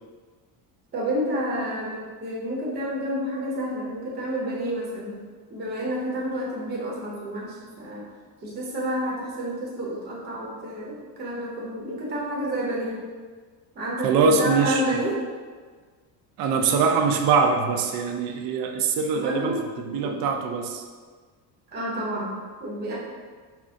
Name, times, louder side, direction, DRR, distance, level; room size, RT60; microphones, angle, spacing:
voice 1, 0.9-5.2 5.5-8.0 8.4-13.0 13.8-15.2 19.1-20.2 21.7-22.3 22.6-22.9, equal, 20° right, -5 dB, 0.7 m, -29 dB
voice 2, 14.0-15.0 16.4-20.8, right 5 dB, 50° right, 4 dB, 0.4 m, -23 dB
4.2 x 2.0 x 3.5 m, 1.5 s
cardioid pair, 155°, 45 cm